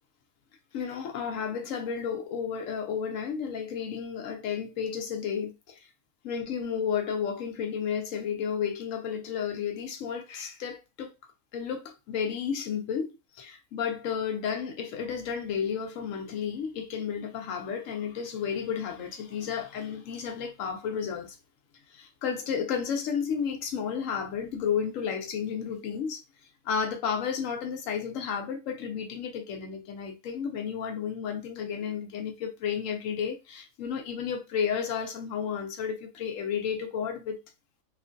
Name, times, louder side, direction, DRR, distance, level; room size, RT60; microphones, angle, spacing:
voice 1, 0.7-5.8 6.2-11.1 11.5-21.4 21.9-26.2 26.7-37.4, left 7 dB, 70° left, 0.9 m, -32 dB
3.0 x 2.4 x 2.5 m
omnidirectional pair, 1.5 m